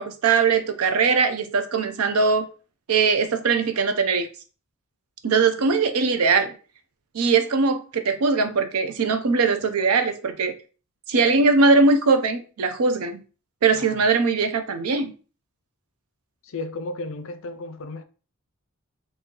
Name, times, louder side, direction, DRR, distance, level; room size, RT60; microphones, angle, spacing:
voice 1, 0.0-2.5 2.9-4.3 5.2-6.5 7.1-10.5 11.1-13.2 13.6-15.1, right 4 dB, 80° right, 0.5 m, -21 dB
voice 2, 13.7-14.1 16.4-18.0, left 2 dB, 60° left, 0.5 m, -34 dB
3.7 x 2.7 x 2.9 m
head